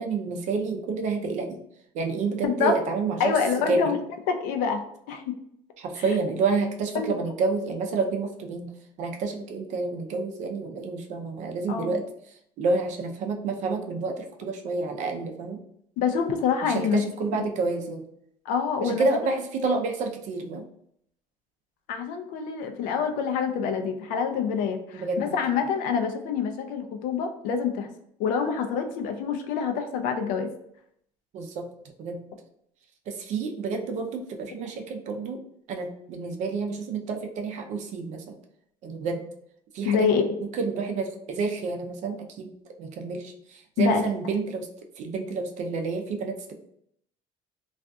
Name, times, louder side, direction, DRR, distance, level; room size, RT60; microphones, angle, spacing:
voice 1, 0.0-1.6 1.9-3.3 3.7-3.9 5.8-8.7 9.0-12.0 12.6-15.6 16.6-18.0 18.8-20.6 24.9-25.3 31.3-31.7 32.0-32.2 33.1-35.4 35.7-38.2 38.8-39.3 39.7-40.1 40.4-42.5 42.8-44.7 45.0-46.5, right 4 dB, 60° right, 4 dB, 0.5 m, -29 dB
voice 2, 2.4-2.7 3.2-4.0 4.3-4.8 5.1-5.3 6.0-6.1 6.9-7.2 11.7-11.9 16.0-17.0 18.5-19.2 21.9-27.9 28.2-30.5 39.8-40.3 43.8-44.0, left 6 dB, 75° left, 6 dB, 0.4 m, -26 dB
2.6 x 2.4 x 2.2 m, 0.72 s
cardioid pair, 110°, 14 cm